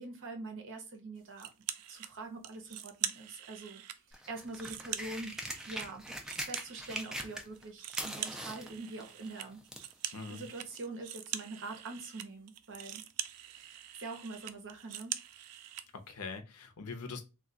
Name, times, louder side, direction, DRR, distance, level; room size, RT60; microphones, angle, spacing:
voice 1, 0.0-1.5 1.9-6.1 6.4-9.6 10.3-13.0 13.5-15.2, right 3 dB, 60° right, 0.8 m, -44 dB
sound 1, 1.4-2.1 2.4-4.0 4.4-7.3 7.5-15.9, right 11 dB, 85° right, 0.4 m, -43 dB
sound 2, 4.1-7.6 7.9-9.9 10.7-10.8, equal, ahead, 0.4 m, -41 dB
voice 2, 10.1-10.5 15.9-17.2, left 4 dB, 80° left, 0.6 m, -42 dB
2.3 x 2.3 x 3.8 m
head